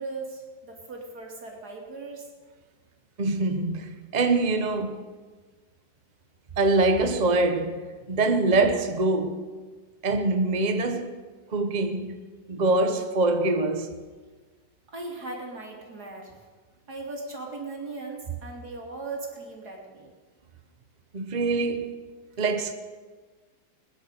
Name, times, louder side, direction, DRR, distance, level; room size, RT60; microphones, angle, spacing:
voice 1, 0.0-2.3 14.9-16.4 16.9-20.1, right 3 dB, 55° right, 3.3 m, -38 dB
voice 2, 3.2-5.0 6.6-9.4 10.0-11.2 11.5-12.2 12.5-13.9 21.1-22.0 22.4-22.7, right 2 dB, 35° right, 0.7 m, -24 dB
21.5 x 10.0 x 6.6 m
omnidirectional pair, 2.0 m